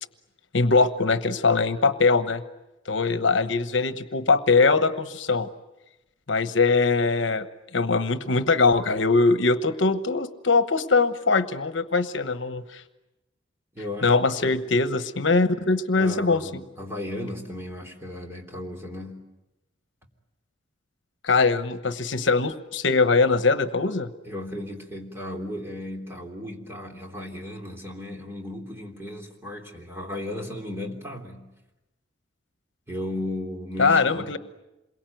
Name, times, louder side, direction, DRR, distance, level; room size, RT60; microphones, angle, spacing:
voice 1, 0.5-2.4 2.9-5.5 6.3-7.5 7.7-12.8 14.0-16.4 21.2-24.1 33.8-34.4, left 4 dB, 70° left, 11 dB, 1.1 m, -22 dB
voice 2, 13.7-14.6 15.5-15.6 15.9-19.2 24.3-31.5 32.9-34.3, left 1 dB, 10° right, 1 dB, 3.4 m, -35 dB
27.5 x 22.5 x 9.2 m, 1.0 s
head